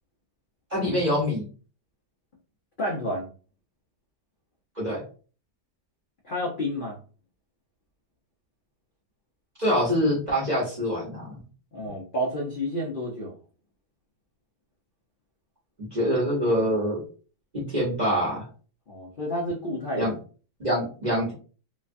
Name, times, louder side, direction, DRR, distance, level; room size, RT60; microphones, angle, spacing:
voice 1, 0.7-1.5 4.8-5.0 9.6-11.4 15.8-17.0 17.5-18.5 20.0-20.1 20.6-21.3, equal, 35° right, -4 dB, 0.9 m, -25 dB
voice 2, 2.8-3.3 6.2-7.0 11.7-13.4 18.9-20.1, equal, 50° left, -4 dB, 0.6 m, -30 dB
3.1 x 2.2 x 2.5 m, 0.38 s
omnidirectional pair, 1.8 m